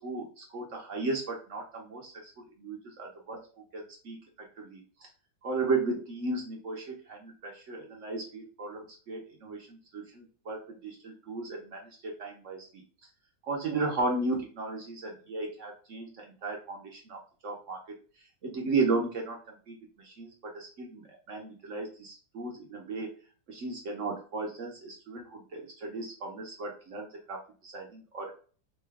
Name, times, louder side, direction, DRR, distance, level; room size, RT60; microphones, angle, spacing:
voice 1, 0.0-3.5 3.7-4.2 4.6-4.8 5.4-12.6 13.4-17.8 18.4-19.8 20.0-23.1 23.5-28.3, right 3 dB, 60° right, 1 dB, 0.8 m, -35 dB
3.8 x 2.2 x 3.4 m, 0.38 s
omnidirectional pair, 2.0 m